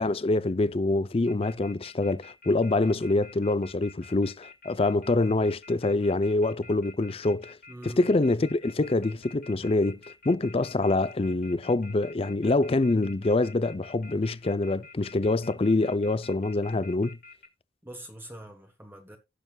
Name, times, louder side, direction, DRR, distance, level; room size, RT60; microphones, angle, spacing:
voice 1, 0.0-7.6 7.8-10.0 10.3-17.2, left 2 dB, 35° left, 0.5 m, -25 dB
sound 1, 1.3-17.5, left 4 dB, 55° left, 2.5 m, -49 dB
voice 2, 7.7-8.1 17.8-19.2, right 1 dB, 10° right, 1.3 m, -44 dB
16.5 x 6.9 x 2.3 m
head